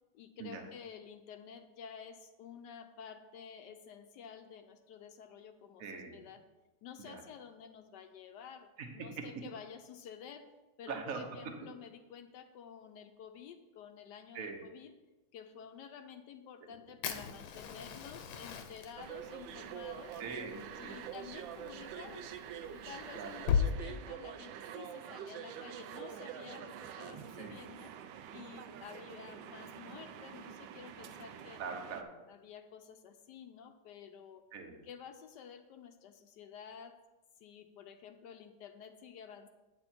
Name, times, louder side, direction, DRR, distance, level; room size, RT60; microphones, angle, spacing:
voice 1, 0.1-6.4 6.8-10.5 10.8-14.9 15.3-20.2 20.8-27.9 28.3-31.6 32.3-34.4 34.8-37.0 37.4-39.5, left 7 dB, 70° left, 8 dB, 1.1 m, -51 dB
voice 2, 5.8-6.2 7.0-7.2 8.8-9.2 10.9-11.2 14.3-14.6 16.6-16.8 20.2-21.0 23.1-23.3 27.4-27.6 31.6-32.0 34.5-34.8, right 5 dB, 50° right, 3 dB, 1.4 m, -42 dB
Fire, 17.0-23.7, left 7 dB, 90° left, 1.6 m, -38 dB
sound 1, 19.0-32.0, right 9 dB, 80° right, 1.3 m, -46 dB
9.3 x 6.9 x 4.4 m, 1.1 s
omnidirectional pair, 2.1 m